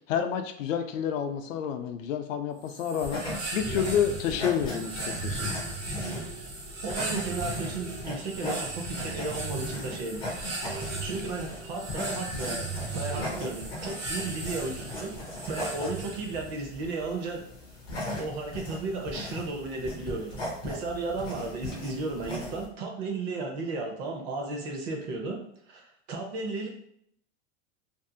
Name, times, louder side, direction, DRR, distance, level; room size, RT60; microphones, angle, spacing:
voice 1, 0.1-3.2 3.5-5.6, left 8 dB, 90° left, 7 dB, 0.5 m, -29 dB
sound 1, 2.7-16.5, right 2 dB, 90° right, 1.0 m, -37 dB
sound 2, 3.0-22.7, left 1 dB, 15° left, 0.3 m, -39 dB
voice 2, 6.8-10.4 10.7-12.7 12.9-15.1 15.5-17.4 18.2-25.4 25.7-26.7, right 3 dB, 35° right, 1 dB, 0.6 m, -34 dB
2.6 x 2.4 x 2.6 m, 0.70 s
supercardioid pair, 160°, 38 cm